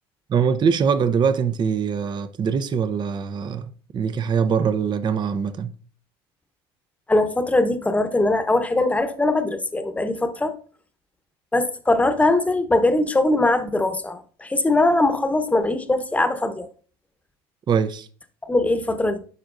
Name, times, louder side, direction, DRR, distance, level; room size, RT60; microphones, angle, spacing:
voice 1, 0.3-5.7 17.7-18.1, right 6 dB, 35° right, 0.7 m, -23 dB
voice 2, 7.1-10.5 11.5-16.7 18.5-19.2, left 2 dB, 10° left, 1.0 m, -21 dB
11.0 x 4.6 x 2.6 m
hypercardioid pair, 85°, 13 cm